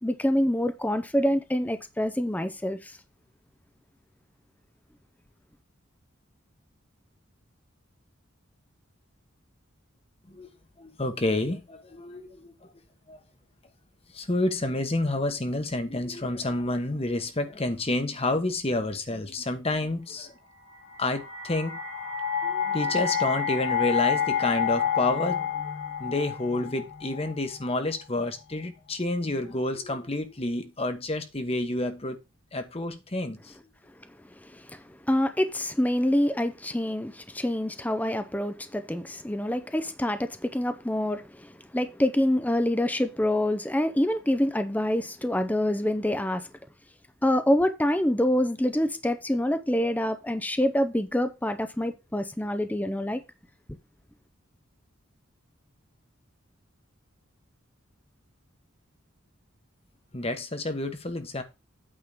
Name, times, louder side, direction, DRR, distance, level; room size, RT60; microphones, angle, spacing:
voice 1, 0.0-2.9 34.5-34.6 35.1-46.5 47.2-53.2, left 1 dB, 10° left, 0.6 m, -26 dB
voice 2, 10.8-12.7 13.1-13.2 14.1-20.3 21.0-21.8 22.4-32.2 32.5-33.5 60.1-61.4, left 2 dB, 30° left, 1.1 m, -29 dB
sound 1, 20.7-27.8, left 8 dB, 70° left, 2.7 m, -29 dB
8.8 x 3.8 x 6.6 m
head